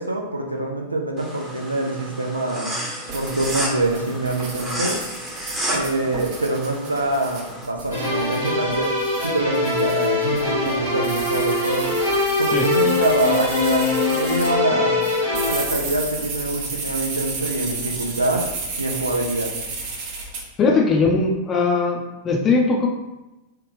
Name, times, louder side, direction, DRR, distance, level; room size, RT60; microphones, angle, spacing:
voice 1, 0.0-2.8 3.1-5.0 5.7-8.9 9.2-11.9 12.4-15.0 15.5-18.4 18.8-19.5, right 2 dB, 80° right, 2 dB, 0.4 m, -25 dB
sound 1, 1.2-7.6, equal, 15° right, 0.9 m, -31 dB
sound 2, 3.1-14.5 15.0-20.4, right 3 dB, 45° right, 0.7 m, -33 dB
sound 3, 7.9-15.6, left 3 dB, 90° left, 1.5 m, -22 dB
voice 2, 20.6-22.9, left 4 dB, 25° left, 1 dB, 0.6 m, -20 dB
3.2 x 2.4 x 3.3 m, 1.0 s
figure-of-eight pair, 90°, 0 cm